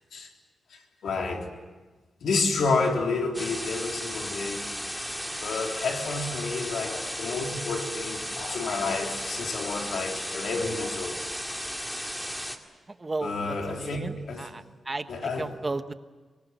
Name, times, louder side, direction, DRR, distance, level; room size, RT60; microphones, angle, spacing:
voice 1, 0.7-1.5 2.2-4.7 5.4-11.2 13.2-14.6 15.1-15.5, left 3 dB, 85° left, 3.6 m, -30 dB
sound 1, 3.3-12.6, equal, 5° left, 2.1 m, -35 dB
voice 2, 13.0-13.3 13.7-15.1 15.4-15.9, right 3 dB, 25° right, 1.1 m, -33 dB
25.0 x 19.5 x 9.3 m
wide cardioid pair, 115°, 0 cm